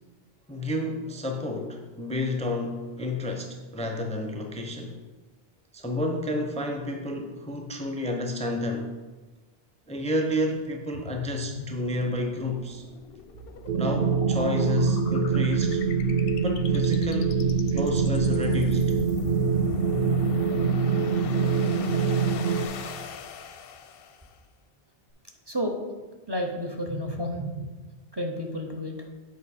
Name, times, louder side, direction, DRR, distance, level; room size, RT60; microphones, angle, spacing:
voice 1, 0.5-5.0 5.7-8.9 9.9-12.8 13.8-15.8 16.4-18.9, left 1 dB, 10° left, 3 dB, 0.4 m, -30 dB
sound 1, 10.9-24.3, left 6 dB, 65° left, 0.7 m, -39 dB
sound 2, 13.2-20.6, right 8 dB, 85° right, 1.1 m, -46 dB
sound 3, 13.7-22.7, right 5 dB, 60° right, 0.5 m, -24 dB
voice 2, 26.3-27.7 28.1-28.9, equal, 25° right, 1 dB, 0.7 m, -31 dB
7.5 x 4.9 x 4.2 m, 1.2 s
omnidirectional pair, 1.2 m